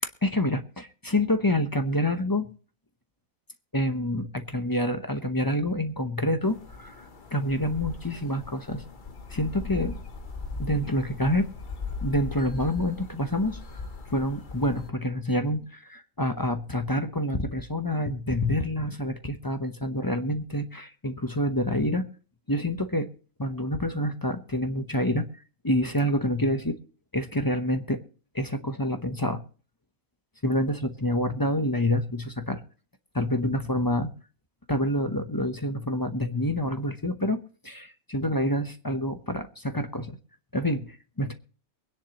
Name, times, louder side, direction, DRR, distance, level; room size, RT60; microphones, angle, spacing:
voice 1, 0.2-2.5 3.7-8.8 9.3-10.0 10.6-11.5 12.0-13.6 14.1-22.0 22.5-23.1 23.4-25.3 25.6-26.8 27.1-28.0 28.3-29.4 30.4-32.6 33.1-34.1 34.7-40.2 40.5-41.3, left 1 dB, 20° left, 8 dB, 0.7 m, -27 dB
sound 1, 6.4-14.9, left 4 dB, 40° left, 1.0 m, -39 dB
23.0 x 10.0 x 3.0 m, 0.38 s
omnidirectional pair, 1.5 m